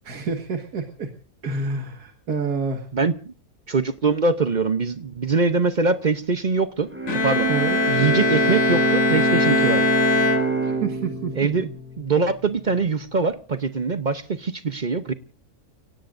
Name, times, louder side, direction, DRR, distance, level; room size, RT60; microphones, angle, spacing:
voice 1, 0.0-1.1 1.4-2.9 7.5-7.8 10.3-11.3 11.6-11.7, right 4 dB, 75° right, 2.2 m, -28 dB
voice 2, 2.9-3.3 3.7-6.9 7.2-7.5 7.9-9.9 11.3-11.7 12.0-15.1, right 4 dB, 40° right, 0.7 m, -23 dB
Bowed string instrument, 6.9-12.9, right 4 dB, 5° right, 4.7 m, -26 dB
Bowed string instrument 2, 7.1-11.1, left 3 dB, 55° left, 1.9 m, -22 dB
30.0 x 17.5 x 2.6 m
omnidirectional pair, 1.6 m